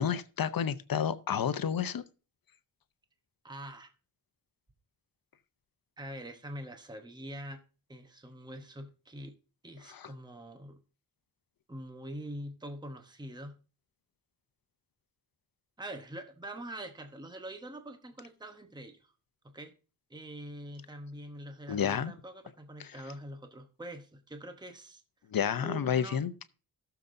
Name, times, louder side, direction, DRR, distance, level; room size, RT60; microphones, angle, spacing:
voice 1, 0.0-2.0 9.9-10.1 21.7-22.1 22.8-22.9 25.3-26.3, left 8 dB, 70° left, 0.7 m, -30 dB
voice 2, 3.4-3.9 6.0-7.6 7.9-9.4 9.6-10.8 11.7-13.6 15.8-19.1 19.4-19.8 20.1-25.0 25.6-26.2, right 1 dB, 10° right, 0.9 m, -44 dB
18.0 x 6.9 x 2.6 m
wide cardioid pair, 140°, 36 cm